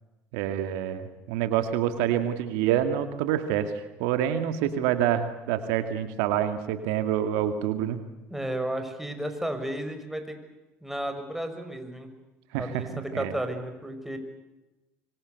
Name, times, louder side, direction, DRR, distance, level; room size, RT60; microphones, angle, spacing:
voice 1, 0.3-8.0 12.5-13.3, right 10 dB, 75° right, 9 dB, 2.2 m, -27 dB
voice 2, 8.3-10.4 10.8-12.1 12.6-14.2, right 1 dB, 5° right, 6 dB, 6.1 m, -33 dB
25.5 x 24.5 x 8.2 m, 1.0 s
hypercardioid pair, 70°, 7 cm